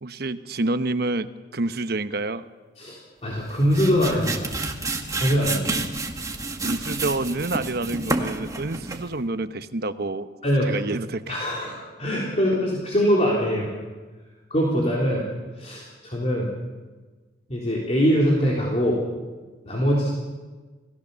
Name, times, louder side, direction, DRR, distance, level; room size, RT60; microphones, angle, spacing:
voice 1, 0.0-2.4 6.6-10.3 10.7-11.3, right 2 dB, 60° right, 10 dB, 1.0 m, -28 dB
voice 2, 2.8-4.5 5.1-5.8 10.4-10.7 11.3-13.7 14.5-15.3 15.6-16.5 17.5-19.0 19.6-20.1, equal, 35° left, -4 dB, 3.7 m, -23 dB
sound 1, 3.3-9.2, right 2 dB, 20° right, 1.9 m, -29 dB
28.5 x 18.0 x 7.0 m, 1.3 s
head